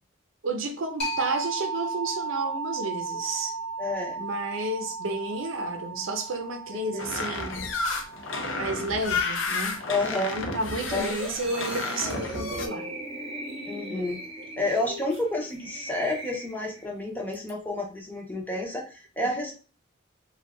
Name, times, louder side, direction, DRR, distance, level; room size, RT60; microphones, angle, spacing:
voice 1, 0.4-3.5 4.2-7.7 8.5-9.8 10.1-12.9, right 2 dB, 80° right, 0.6 m, -31 dB
sound 1, 1.0-10.4, right 3 dB, 55° left, 1.2 m, -36 dB
voice 2, 3.8-4.2 6.7-7.1 9.9-10.4 10.9-11.1 13.7-14.2 14.6-19.6, left 2 dB, 10° left, 0.6 m, -30 dB
sound 2, 7.0-12.7, left 3 dB, 75° left, 0.6 m, -31 dB
sound 3, 10.8-16.9 17.3-17.5, right 1 dB, 30° right, 0.6 m, -39 dB
2.6 x 2.3 x 3.5 m
head